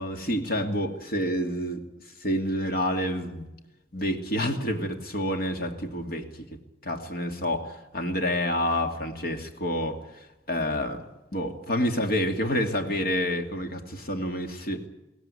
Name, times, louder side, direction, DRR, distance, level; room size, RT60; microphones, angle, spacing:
voice 1, 0.0-1.8 2.2-3.4 3.9-7.6 7.9-10.0 10.5-11.0 11.3-14.8, equal, 55° left, 5 dB, 2.5 m, -28 dB
22.5 x 17.0 x 9.8 m, 1.0 s
head